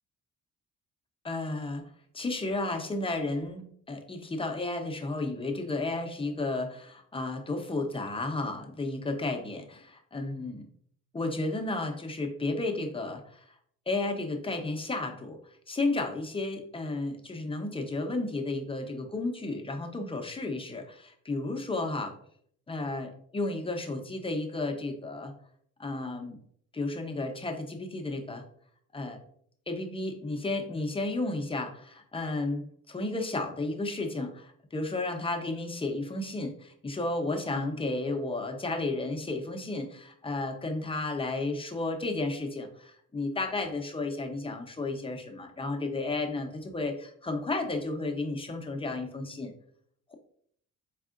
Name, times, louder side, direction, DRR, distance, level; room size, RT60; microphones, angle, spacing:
voice 1, 1.2-1.8 2.1-10.7 11.1-13.4 13.9-15.4 15.7-22.1 22.7-25.3 25.8-26.4 26.7-28.4 28.9-29.2 29.7-49.5, left 2 dB, 20° left, 4 dB, 0.7 m, -33 dB
4.1 x 3.6 x 2.4 m, 0.63 s
cardioid pair, 90°, 30 cm